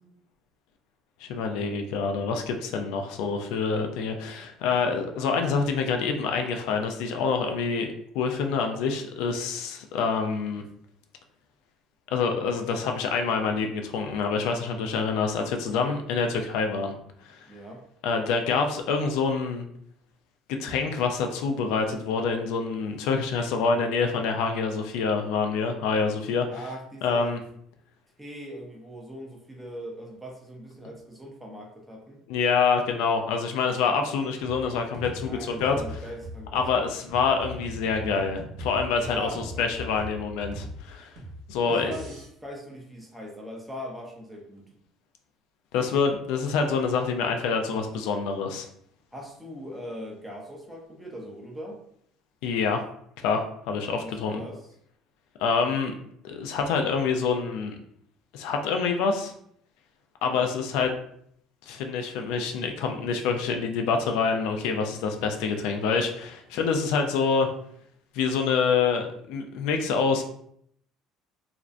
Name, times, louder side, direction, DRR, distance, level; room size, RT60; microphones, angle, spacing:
voice 1, 1.2-7.9 8.1-10.6 12.1-16.9 17.3-17.4 18.0-19.7 20.5-26.5 27.0-27.4 32.3-35.8 36.5-39.3 39.6-41.1 41.5-41.9 45.7-48.7 52.4-52.8 53.2-54.4 55.4-55.9 56.2-57.8 58.3-59.3 60.2-60.9 61.7-67.5 68.1-70.2, left 5 dB, 75° left, 4 dB, 0.3 m, -26 dB
voice 2, 17.5-17.8 26.5-27.4 28.2-32.2 35.2-36.9 39.0-39.9 41.6-44.6 49.1-51.8 54.0-54.6 60.3-60.5, equal, 5° right, -1 dB, 0.4 m, -40 dB
sound 1, 34.4-42.3, equal, 65° right, 0.7 m, -40 dB
2.4 x 2.1 x 2.4 m, 0.68 s
cardioid pair, 165°, 0 cm